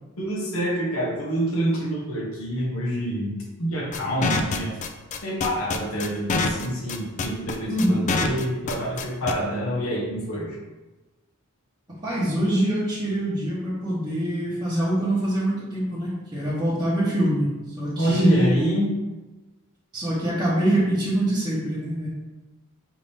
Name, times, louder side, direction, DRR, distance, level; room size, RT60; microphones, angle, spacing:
voice 1, 0.2-3.3 3.6-4.8 5.2-10.6 18.0-18.9, right 1 dB, 70° left, -3 dB, 1.2 m, -26 dB
sound 1, 3.9-9.3, left 4 dB, 35° left, 0.3 m, -25 dB
voice 2, 7.7-8.1 11.9-18.8 19.9-22.1, right 1 dB, 20° right, -10 dB, 1.0 m, -24 dB
5.2 x 2.8 x 3.4 m, 1.1 s
head